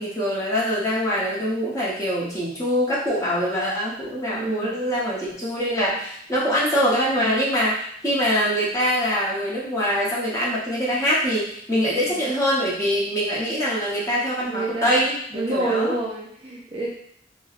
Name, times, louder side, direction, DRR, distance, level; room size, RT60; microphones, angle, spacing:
voice 1, 0.0-15.9, equal, 15° left, -7 dB, 0.9 m, -24 dB
voice 2, 4.3-4.8 12.1-12.2 14.3-14.9 15.3-16.9, right 2 dB, 30° right, -3 dB, 0.4 m, -28 dB
4.4 x 2.1 x 2.5 m, 0.68 s
head